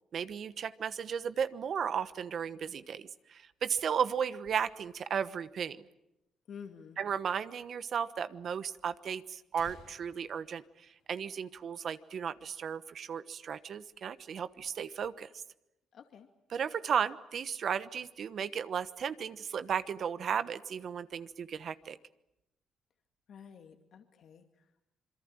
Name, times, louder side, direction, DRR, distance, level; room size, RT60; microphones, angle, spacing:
voice 1, 0.1-5.8 7.0-15.4 16.5-22.0, right 7 dB, 60° right, 13 dB, 1.2 m, -35 dB
sound 1, 3.4-5.2 5.5-5.6 5.8-5.9 6.6-6.7 7.6-7.7 8.0-8.1 8.9-9.0 9.3-11.9 12.3-12.4 12.8-13.1 13.5-14.0, left 5 dB, 90° left, 6.4 m, -60 dB
voice 2, 6.5-7.0 15.9-16.3 23.3-24.8, left 7 dB, 65° left, 5 dB, 2.2 m, -50 dB
27.0 x 22.5 x 9.0 m, 0.87 s
cardioid pair, 90°, 0 cm